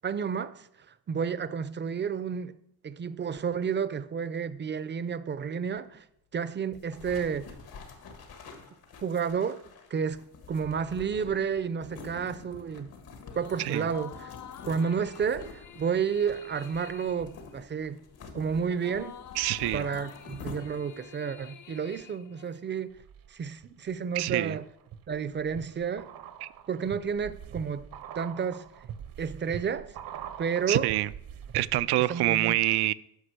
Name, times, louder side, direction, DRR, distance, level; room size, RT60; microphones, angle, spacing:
voice 1, 0.0-0.7 1.1-2.6 2.8-6.0 6.3-7.5 9.0-9.6 9.9-10.2 10.5-12.9 13.3-14.3 14.7-18.0 18.3-19.2 19.7-23.0 23.3-24.6 25.1-26.1 26.7-27.9 28.1-28.7 29.2-30.0 30.4-30.9 32.1-32.6, right 6 dB, 30° right, 0.5 m, -31 dB
sound 1, 6.7-21.1, left 4 dB, 75° left, 1.8 m, -47 dB
sound 2, 13.2-22.9, left 9 dB, 50° left, 0.6 m, -49 dB
voice 2, 19.4-19.9 24.1-24.6 26.4-26.5 30.7-31.1 31.5-32.9, right 15 dB, 85° right, 0.5 m, -26 dB
sound 3, 22.9-23.7 24.1-32.0 32.3-32.4, right 9 dB, 60° right, 0.8 m, -44 dB
10.0 x 5.9 x 6.5 m
cardioid pair, 120°, 38 cm